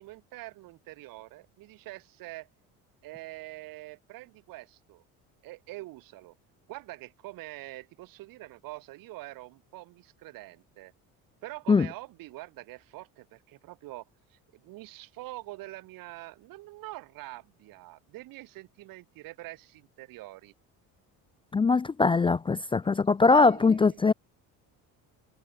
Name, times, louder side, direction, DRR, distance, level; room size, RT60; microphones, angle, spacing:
voice 1, 0.0-2.5 3.0-5.0 5.4-6.4 6.7-10.9 11.4-20.5 23.3-24.1, right 19 dB, 75° right, 7.1 m, -45 dB
voice 2, 21.5-24.1, left 4 dB, 15° left, 0.5 m, -22 dB
cardioid pair, 135°, 34 cm